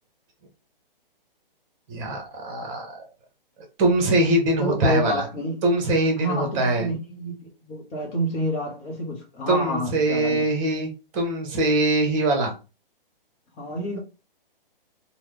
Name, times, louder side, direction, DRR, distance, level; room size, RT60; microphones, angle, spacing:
voice 1, 1.9-3.1 3.8-5.3 5.6-6.9 9.5-12.5, right 1 dB, 35° right, 1.0 m, -23 dB
voice 2, 4.6-5.6 6.2-10.4 13.6-14.0, equal, 20° left, 0.7 m, -28 dB
2.9 x 2.2 x 3.4 m
hypercardioid pair, 135°, 29 cm